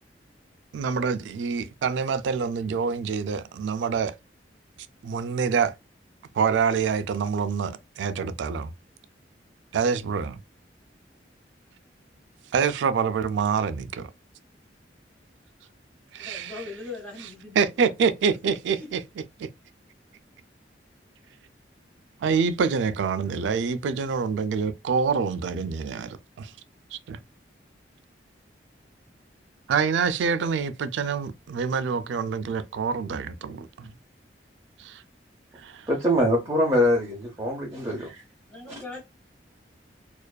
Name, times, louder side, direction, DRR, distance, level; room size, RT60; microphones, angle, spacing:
voice 1, 0.7-4.1 5.0-5.8 6.3-8.7 9.7-10.4 12.5-14.1 16.1-16.5 17.6-19.0 19.4-19.5 22.2-26.5 26.9-27.2 29.7-33.9 34.8-35.0 35.6-35.9, right 6 dB, 80° right, 0.3 m, -26 dB
voice 2, 16.2-17.7 18.8-18.9 38.5-39.0, left 3 dB, 5° left, 0.9 m, -39 dB
voice 3, 35.9-38.2, equal, 15° right, 0.5 m, -23 dB
2.4 x 2.2 x 2.2 m
head